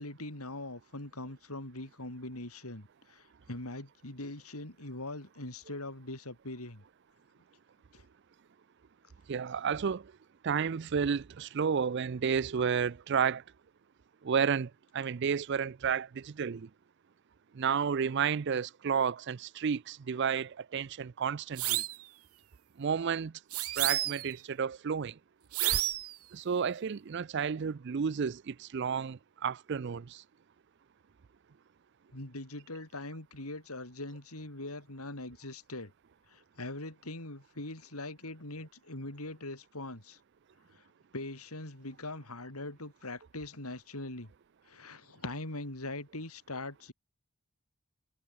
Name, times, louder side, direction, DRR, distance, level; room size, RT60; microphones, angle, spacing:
voice 1, 0.0-6.8 7.9-8.0 32.1-35.9 36.3-40.2 40.7-40.9 41.1-44.3 44.7-46.9, left 2 dB, 90° left, 5.1 m, -42 dB
voice 2, 9.3-10.0 10.4-13.4 14.2-16.7 17.6-21.8 22.8-23.3 23.8-25.1 26.3-30.2, right 6 dB, 50° right, 0.4 m, -31 dB
sound 1, 21.6-22.0 23.5-24.3 25.5-26.1, right 14 dB, 90° right, 1.4 m, -30 dB
head